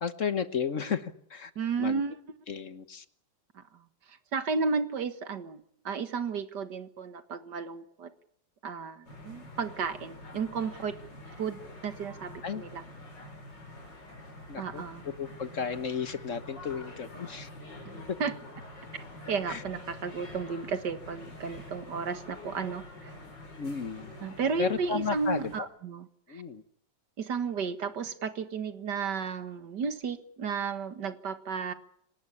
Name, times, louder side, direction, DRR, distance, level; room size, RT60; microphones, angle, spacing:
voice 1, 0.0-1.5 1.8-2.0 2.5-3.0 12.4-12.6 14.5-17.5 19.5-19.6 23.6-24.1 24.6-25.7 26.3-26.6, left 6 dB, 50° left, 12 dB, 1.4 m, -33 dB
voice 2, 1.6-2.2 3.7-3.8 4.1-8.1 8.6-11.0 11.4-12.8 14.6-15.1 17.8-18.3 18.9-23.1 24.2-26.4 27.2-31.7, right 5 dB, 75° right, 11 dB, 2.2 m, -33 dB
sound 1, 9.1-25.6, left 1 dB, 90° left, 5.1 m, -46 dB
26.0 x 19.0 x 8.5 m, 0.71 s
omnidirectional pair, 1.9 m